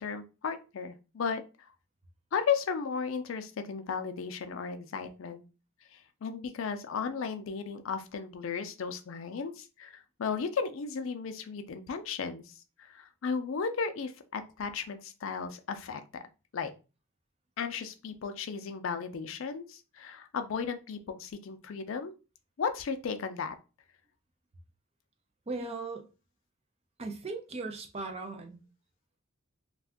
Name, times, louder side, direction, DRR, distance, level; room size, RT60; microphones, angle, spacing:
voice 1, 0.0-1.4 2.3-5.4 5.9-16.2 16.5-16.7 17.6-22.1 22.6-23.6, left 5 dB, 70° left, 0.4 m, -35 dB
voice 2, 25.5-26.1 27.0-28.6, right 3 dB, 30° right, 0.5 m, -38 dB
2.5 x 2.4 x 3.4 m
head